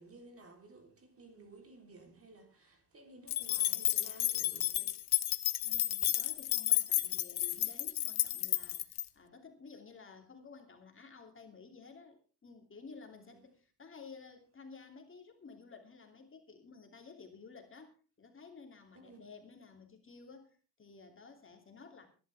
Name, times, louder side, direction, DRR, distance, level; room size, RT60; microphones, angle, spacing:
voice 1, 0.0-5.1 13.1-13.4 18.9-19.3, right 2 dB, 35° right, 3.8 m, -56 dB
sound 1, 3.3-9.0, left 13 dB, 65° left, 1.0 m, -32 dB
voice 2, 5.6-22.1, left 5 dB, 30° left, 2.9 m, -54 dB
21.5 x 11.5 x 3.5 m
cardioid pair, 115°, 41 cm